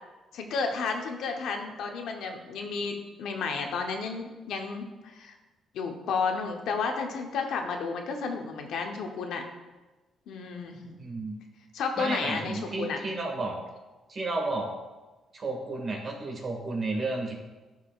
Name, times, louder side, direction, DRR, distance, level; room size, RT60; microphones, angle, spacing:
voice 1, 0.3-5.3 5.7-9.4 10.3-10.9 11.7-13.0, left 4 dB, 80° left, 3 dB, 0.9 m, -32 dB
voice 2, 11.0-11.4 12.0-13.6 14.1-14.7 15.3-17.3, right 2 dB, 45° right, 1 dB, 1.8 m, -32 dB
11.0 x 4.8 x 2.4 m, 1.2 s
cardioid pair, 90°, 0 cm